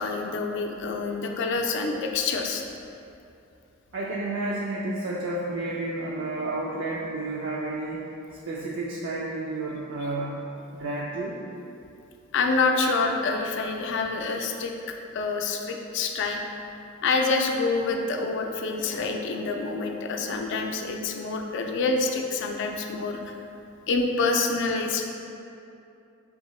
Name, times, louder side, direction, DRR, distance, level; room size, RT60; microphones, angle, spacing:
voice 1, 0.0-2.6 12.3-14.7 15.1-16.4 17.0-23.4 23.9-25.1, left 3 dB, 60° left, 3 dB, 0.4 m, -27 dB
voice 2, 3.9-8.1 8.5-10.4 10.7-11.4, right 2 dB, 65° right, -5 dB, 0.4 m, -31 dB
3.7 x 3.5 x 3.0 m, 2.6 s
head